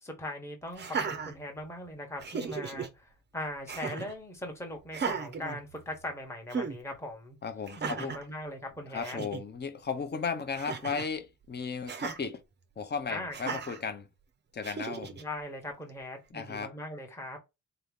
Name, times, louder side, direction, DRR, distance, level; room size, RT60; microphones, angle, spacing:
voice 1, 0.0-7.4 7.8-9.2 13.1-13.6 15.2-17.4, left 1 dB, 10° left, 1.0 m, -40 dB
Laughter, 0.7-1.8 2.2-2.9 3.7-4.2 4.9-6.1 6.5-6.8 7.7-8.3 8.8-8.9 9.0-9.4 10.5-11.1 11.9-12.2 13.3-13.8 14.6-15.2, right 5 dB, 35° right, 0.5 m, -36 dB
voice 2, 7.4-8.2 8.9-12.4 12.8-14.1 14.5-15.2 16.3-16.7, left 5 dB, 30° left, 0.7 m, -35 dB
3.9 x 2.8 x 3.5 m
wide cardioid pair, 160°, 33 cm